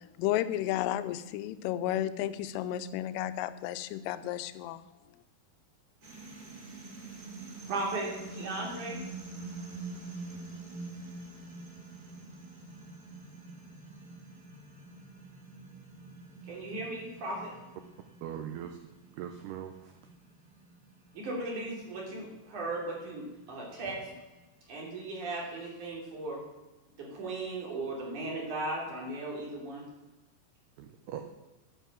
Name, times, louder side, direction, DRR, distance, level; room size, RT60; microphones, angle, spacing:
voice 1, 0.2-4.8, left 13 dB, 90° left, 12 dB, 3.2 m, -32 dB
sound 1, 6.0-24.5, right 3 dB, 25° right, 2.3 m, -47 dB
voice 2, 7.7-9.0 16.4-17.5 21.1-24.1 24.7-26.4 27.0-29.9, right 2 dB, 45° right, -2 dB, 3.8 m, -37 dB
voice 3, 18.2-18.8 19.1-20.0 30.8-31.2, right 10 dB, 85° right, 6 dB, 2.3 m, -40 dB
10.0 x 9.3 x 7.4 m, 1.1 s
omnidirectional pair, 5.6 m